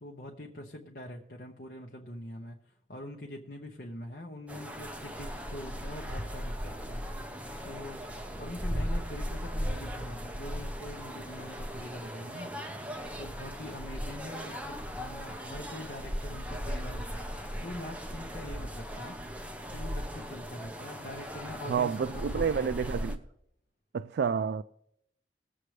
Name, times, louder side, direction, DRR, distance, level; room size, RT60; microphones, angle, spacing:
voice 1, 0.0-2.6 2.9-7.0 7.6-8.0 8.4-12.5 13.2-17.2 17.6-19.2 19.7-22.7, left 1 dB, 55° left, 0.9 m, -43 dB
sound 1, 4.5-23.2, equal, 10° right, 0.7 m, -38 dB
voice 2, 21.7-23.2 23.9-24.6, right 6 dB, 65° right, 0.3 m, -29 dB
20.0 x 7.6 x 3.2 m
head